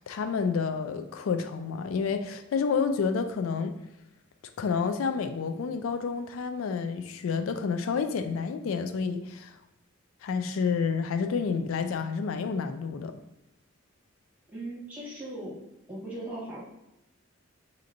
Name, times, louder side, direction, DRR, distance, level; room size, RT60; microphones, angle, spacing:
voice 1, 0.0-3.7 4.6-9.6 10.2-13.2, left 5 dB, 85° left, 8 dB, 0.4 m, -29 dB
voice 2, 14.5-15.5 15.9-16.6, right 1 dB, 10° right, -7 dB, 1.4 m, -38 dB
6.2 x 2.9 x 2.5 m, 0.90 s
head